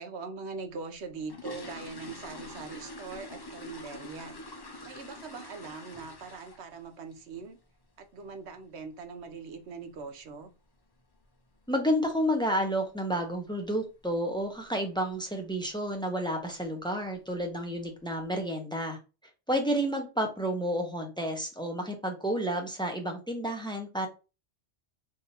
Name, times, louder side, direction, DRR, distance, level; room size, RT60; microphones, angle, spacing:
voice 1, 0.0-4.4 4.8-7.6 8.0-10.5, right 4 dB, 70° right, 1.1 m, -42 dB
sound 1, 0.9-6.8 7.1-7.4 7.7-7.8 8.2-8.3 8.7-8.9 9.2-9.3 9.9-10.0 10.2-10.4 10.9-11.2 11.5-11.6 12.0-12.2 12.5-12.6 13.0-13.1 13.8-14.1 14.4-14.7 15.1-15.2 15.6-15.7 16.5-16.6 17.0-17.5 18.0-18.1, left 1 dB, 30° left, 0.5 m, -45 dB
voice 2, 11.7-19.0 19.5-24.1, equal, 5° left, 0.8 m, -30 dB
3.5 x 2.8 x 4.2 m
omnidirectional pair, 1.2 m